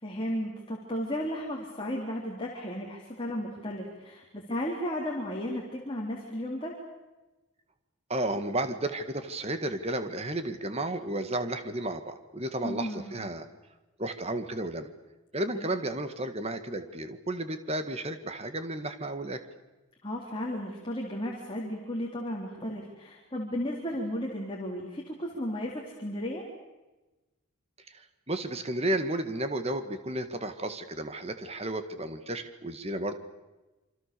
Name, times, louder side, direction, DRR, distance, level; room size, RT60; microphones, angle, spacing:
voice 1, 0.0-6.8 12.6-13.2 15.5-15.7 20.0-26.4, equal, 25° left, -2 dB, 3.6 m, -34 dB
voice 2, 8.1-13.5 14.0-14.9 15.3-19.4 27.9-33.2, right 1 dB, 30° right, 9 dB, 1.9 m, -33 dB
28.0 x 25.5 x 6.9 m, 1.1 s
head